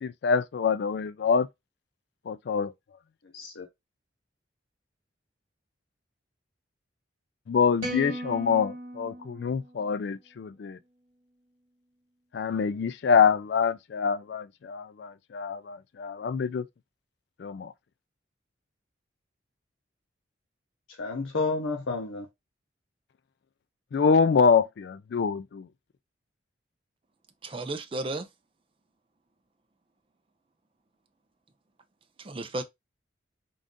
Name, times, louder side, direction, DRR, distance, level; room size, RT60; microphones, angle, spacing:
voice 1, 0.0-1.5 2.3-2.7 7.5-10.8 12.3-16.7 17.4-17.7 23.9-25.7, left 6 dB, 60° left, 0.3 m, -25 dB
voice 2, 3.3-3.7 20.9-22.3, left 3 dB, 85° left, 0.7 m, -31 dB
sound 1, 7.8-10.2, right 1 dB, 45° right, 1.4 m, -38 dB
voice 3, 27.4-28.3 32.2-32.6, right 2 dB, 25° right, 0.4 m, -33 dB
3.8 x 2.5 x 3.6 m
head